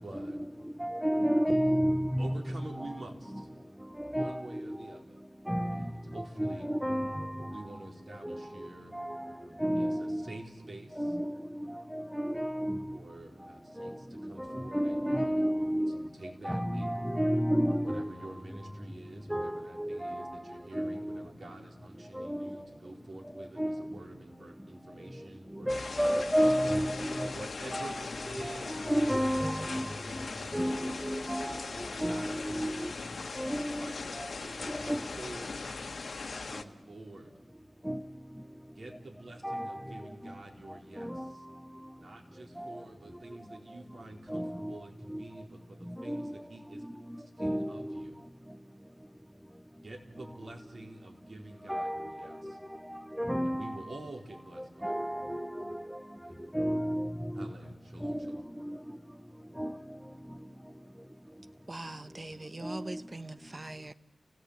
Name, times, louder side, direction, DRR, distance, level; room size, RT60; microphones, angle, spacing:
voice 1, 0.0-0.4 2.2-3.5 4.1-5.2 5.5-6.7 7.4-11.2 12.9-16.9 17.7-26.5 27.3-28.9 29.3-37.3 38.8-41.5 42.0-46.9 47.2-48.2 49.8-52.6 53.4-54.9 56.2-56.6 57.3-58.5, right 2 dB, 50° right, 4.2 m, -48 dB
voice 2, 0.8-2.4 2.8-2.9 4.0-4.8 5.5-5.9 6.2-7.6 8.2-8.4 8.9-9.3 9.6-10.2 11.0-13.0 13.8-13.9 14.5-16.1 16.4-18.1 19.3-20.4 20.7-21.2 22.2-22.6 23.4-23.8 25.7-27.3 27.7-28.0 28.3-29.9 30.5-31.5 32.0-32.9 33.4-33.9 34.2-34.3 34.7-35.0 37.9-38.0 39.4-39.8 41.0-41.3 42.6-42.8 44.3-44.8 45.1-45.2 46.1-46.3 47.4-48.0 51.7-52.3 52.9-53.8 54.8-55.8 56.5-57.5 58.0-58.3 58.6-58.8 59.6-59.7 62.6-63.0, equal, ahead, 0.7 m, -31 dB
sound 1, 25.7-36.6, left 4 dB, 65° left, 1.3 m, -40 dB
voice 3, 61.7-63.9, right 2 dB, 30° right, 1.1 m, -42 dB
29.5 x 17.5 x 8.2 m
wide cardioid pair, 70°, 0 cm